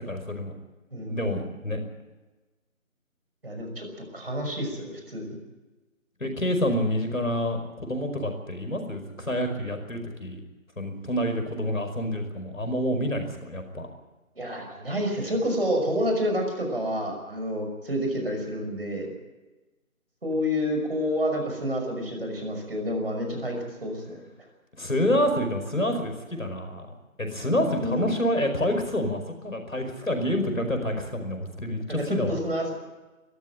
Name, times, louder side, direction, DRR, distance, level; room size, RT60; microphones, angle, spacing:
voice 1, 0.1-0.5 1.0-1.8 6.2-10.4 10.8-13.9 24.8-26.9 27.2-32.4, equal, 70° left, 6 dB, 5.2 m, -28 dB
voice 2, 0.9-1.4 3.4-3.9 4.1-5.3 14.4-19.1 20.2-24.5 27.8-28.1 31.9-32.7, equal, 45° right, 3 dB, 5.8 m, -29 dB
21.5 x 14.5 x 8.9 m, 1.2 s
figure-of-eight pair, 175°, 42 cm